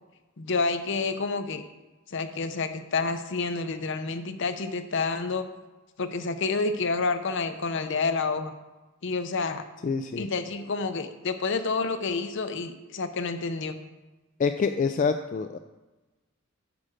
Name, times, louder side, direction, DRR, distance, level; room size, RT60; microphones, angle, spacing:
voice 1, 0.4-1.6 2.1-5.4 6.0-8.5 9.0-9.6 10.2-13.8, left 4 dB, 60° left, 9 dB, 0.7 m, -29 dB
voice 2, 9.8-10.3 14.4-15.6, left 5 dB, 40° left, 8 dB, 0.3 m, -26 dB
8.5 x 4.9 x 6.3 m, 1.2 s
head